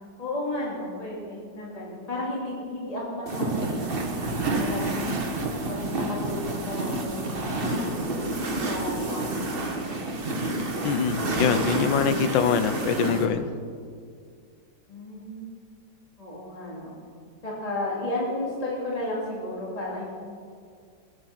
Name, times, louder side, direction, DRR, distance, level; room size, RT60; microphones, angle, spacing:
voice 1, 0.2-3.9 4.5-8.0 8.6-9.5 9.7-10.1 14.9-15.5 16.2-17.0 17.4-20.0, left 1 dB, 20° left, -4 dB, 2.6 m, -33 dB
sound 1, 3.3-13.3, right 2 dB, 35° right, 1.4 m, -29 dB
voice 2, 10.8-13.5, left 7 dB, 85° left, 10 dB, 1.5 m, -24 dB
19.5 x 8.7 x 6.0 m, 2.2 s
omnidirectional pair, 2.0 m